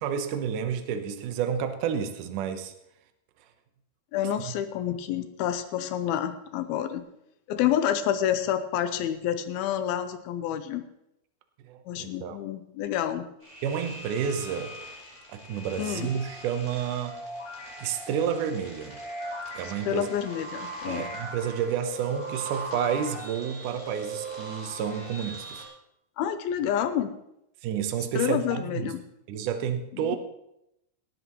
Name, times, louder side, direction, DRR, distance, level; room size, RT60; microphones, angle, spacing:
voice 1, 0.0-2.7 4.4-4.5 11.7-12.4 13.6-14.8 15.3-17.2 17.8-19.0 19.5-20.1 20.8-25.6 27.6-28.9 29.3-30.2, right 8 dB, 70° right, 7 dB, 2.2 m, -30 dB
voice 2, 4.1-7.0 7.5-10.8 11.9-13.3 15.8-16.1 19.6-21.1 26.2-27.1 28.1-29.0 30.1-30.2, left 10 dB, 80° left, 10 dB, 2.6 m, -28 dB
sound 1, 13.4-25.6, right 1 dB, 10° left, 5.0 m, -40 dB
18.0 x 13.5 x 3.1 m, 0.81 s
omnidirectional pair, 4.5 m